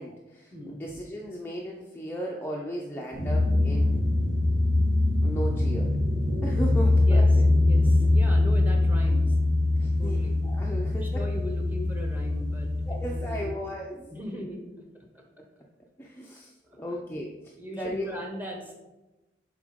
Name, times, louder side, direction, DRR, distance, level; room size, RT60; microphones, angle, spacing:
voice 1, 0.0-4.1 5.2-6.0 6.4-7.4 9.8-10.2 10.4-11.2 12.9-14.5 16.0-18.1, equal, 10° left, -2 dB, 0.5 m, -36 dB
sound 1, 3.1-13.4, left 2 dB, 75° right, 2.2 m, -23 dB
voice 2, 7.6-9.4 10.0-10.4 10.9-12.7 13.1-13.6 14.1-14.8 15.1-15.2 16.6-17.0 17.6-18.7, equal, 10° right, 1 dB, 1.1 m, -39 dB
7.3 x 3.9 x 5.1 m, 1.1 s
head